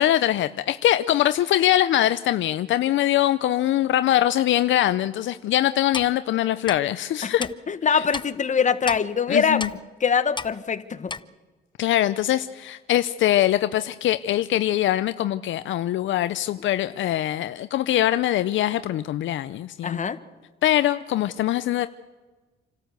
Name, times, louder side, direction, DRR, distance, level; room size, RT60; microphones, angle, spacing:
voice 1, 0.0-7.4 7.9-8.0 9.3-9.7 11.8-20.0 20.6-21.9, left 13 dB, 75° left, 12 dB, 0.6 m, -22 dB
Clock, 5.9-6.1 6.7-6.8 7.4-7.5 8.1-8.3 8.9-9.0 9.6-9.8 10.4-10.5 11.1-11.2, left 4 dB, 25° left, 0.7 m, -31 dB
voice 2, 7.7-9.6 10.0-11.1 19.8-20.2, left 6 dB, 40° left, 10 dB, 1.3 m, -23 dB
27.5 x 13.0 x 8.0 m, 1.3 s
cardioid pair, 90°, 20 cm